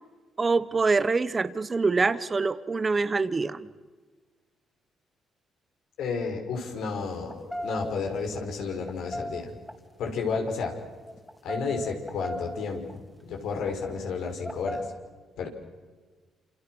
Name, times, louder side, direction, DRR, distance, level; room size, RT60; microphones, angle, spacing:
voice 1, 0.4-3.7, right 4 dB, 30° right, 15 dB, 1.3 m, -25 dB
voice 2, 6.0-9.6 10.0-10.7 11.4-14.9 15.4-15.5, left 5 dB, 80° left, 2 dB, 5.4 m, -32 dB
sound 1, 6.5-6.6 7.2-8.1 8.7-9.7 10.3-10.5 11.0-12.9 13.5-13.7 14.4-14.9, equal, 5° left, 3.2 m, -36 dB
28.5 x 28.0 x 6.4 m, 1.4 s
cardioid pair, 90°, 0 cm